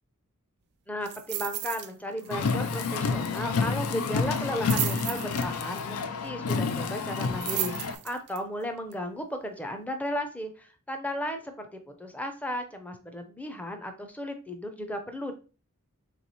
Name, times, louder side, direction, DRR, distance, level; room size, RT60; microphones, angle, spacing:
voice 1, 0.9-15.3, equal, 5° left, 6 dB, 0.6 m, -35 dB
sound 1, 1.0-1.9 2.2-2.5 2.7-2.8 4.3-5.8 7.1-8.4 8.9-9.0, right 13 dB, 50° right, 0.4 m, -34 dB
Car, 2.3-8.0, left 4 dB, 75° left, 0.5 m, -29 dB
3.5 x 3.2 x 4.1 m, 0.35 s
head